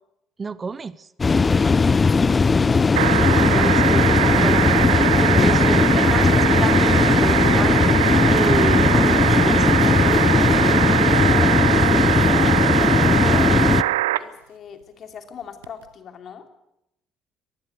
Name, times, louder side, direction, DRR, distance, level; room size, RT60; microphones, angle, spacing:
voice 1, 0.4-1.1 3.4-5.1 5.4-7.8 8.3-9.8, right 4 dB, 30° right, 19 dB, 0.8 m, -29 dB
sound 1, 1.2-13.8, left 4 dB, 25° left, 0.7 m, -18 dB
sound 2, 1.7-7.8, left 1 dB, 10° left, 2.0 m, -37 dB
voice 2, 2.2-3.0 11.2-16.5, left 7 dB, 45° left, 7 dB, 2.9 m, -39 dB
sound 3, 2.9-14.2 15.6-15.7, right 14 dB, 75° right, 0.8 m, -22 dB
24.0 x 19.5 x 6.7 m, 0.82 s
figure-of-eight pair, 55°, 0 cm